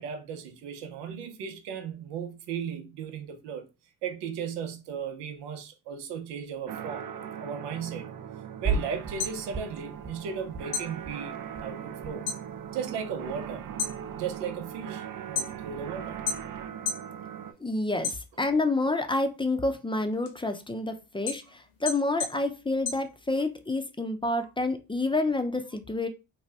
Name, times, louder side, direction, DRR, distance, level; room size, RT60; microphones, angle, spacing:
voice 1, 0.0-3.7 4.0-7.1 7.4-8.1 8.6-12.3 12.7-13.6 14.1-16.2, right 7 dB, 85° right, 0.7 m, -36 dB
sound 1, 6.7-17.5, right 9 dB, 55° right, 0.6 m, -40 dB
sound 2, 8.6-9.3 9.5-10.2 10.5-10.6 10.9-11.1 11.4-12.2 12.5-13.4, right 5 dB, 25° right, 1.1 m, -34 dB
sound 3, 9.0-10.4 10.7-12.5 12.8-13.3 13.6-15.8 16.3-17.1 17.5-18.7 19.1-23.7, left 6 dB, 65° left, 1.0 m, -35 dB
voice 2, 17.6-26.1, left 2 dB, 15° left, 0.5 m, -28 dB
2.8 x 2.2 x 3.2 m
supercardioid pair, 55°, 40 cm